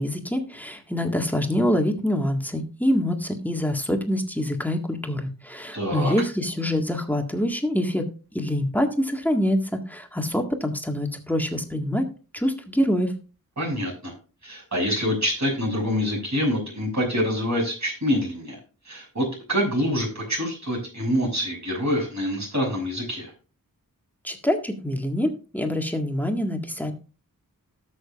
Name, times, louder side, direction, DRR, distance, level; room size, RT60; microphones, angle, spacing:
voice 1, 0.0-8.1 8.3-12.1 12.3-13.1 24.2-26.9, left 1 dB, 5° left, 3 dB, 1.8 m, -25 dB
voice 2, 5.7-6.1 13.6-14.1 14.4-18.6 18.8-23.3, equal, 55° right, -1 dB, 6.5 m, -26 dB
18.5 x 6.5 x 2.5 m, 0.36 s
wide cardioid pair, 60°, 35 cm